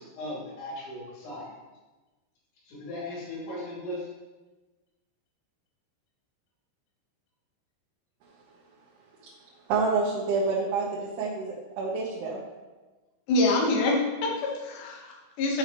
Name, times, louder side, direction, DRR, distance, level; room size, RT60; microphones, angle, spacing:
voice 1, 0.0-1.5 2.7-4.1, left 1 dB, 65° left, -6 dB, 4.9 m, -37 dB
voice 2, 9.7-12.4, right 4 dB, 70° right, -5 dB, 2.7 m, -28 dB
voice 3, 13.3-15.6, left 2 dB, 85° left, 0 dB, 1.8 m, -26 dB
13.0 x 5.6 x 3.0 m, 1.2 s
omnidirectional pair, 5.6 m